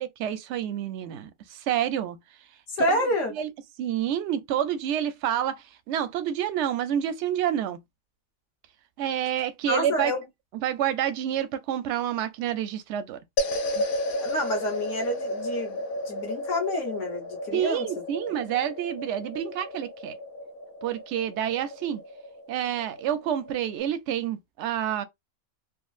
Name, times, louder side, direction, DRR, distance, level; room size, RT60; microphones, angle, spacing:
voice 1, 0.0-2.2 2.8-3.0 3.3-3.5 3.8-7.8 9.0-10.1 10.6-13.2 13.8-13.9 17.5-20.2 20.8-22.0 22.5-25.0, right 10 dB, 65° right, 0.7 m, -28 dB
voice 2, 2.7-3.3 9.7-10.2 14.2-17.9, left 1 dB, 60° left, 1.4 m, -28 dB
sound 1, 13.4-23.8, left 1 dB, 90° left, 1.1 m, -33 dB
3.6 x 2.0 x 2.4 m
omnidirectional pair, 1.5 m